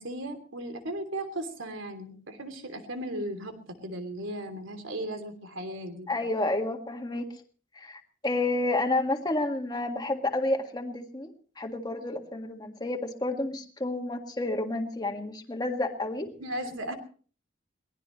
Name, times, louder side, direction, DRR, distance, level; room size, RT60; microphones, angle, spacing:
voice 1, 0.0-6.1 16.4-16.9, right 1 dB, 85° right, 8 dB, 3.0 m, -36 dB
voice 2, 6.1-7.3 7.8-16.3, left 2 dB, 20° left, 3 dB, 1.8 m, -30 dB
23.0 x 18.0 x 3.1 m, 0.41 s
head